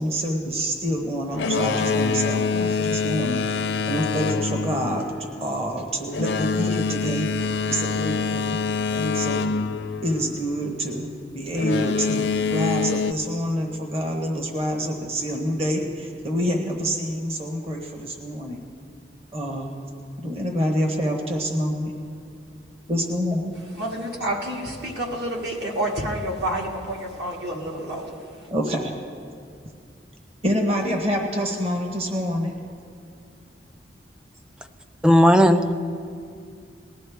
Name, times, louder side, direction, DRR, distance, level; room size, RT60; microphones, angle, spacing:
voice 1, 0.0-3.6 3.9-5.1 5.4-8.6 8.9-9.5 10.0-18.6 19.3-19.7 20.2-21.9 22.9-23.5 28.5-28.9 30.4-32.5, equal, 35° right, 1.0 m, -27 dB
Boat Water vehicle, 1.3-10.7 11.5-13.1, left 4 dB, 75° left, 0.5 m, -25 dB
voice 2, 23.7-28.5, right 1 dB, 70° right, 2.0 m, -29 dB
voice 3, 35.0-35.7, equal, 5° right, 0.4 m, -15 dB
19.5 x 11.5 x 3.4 m
head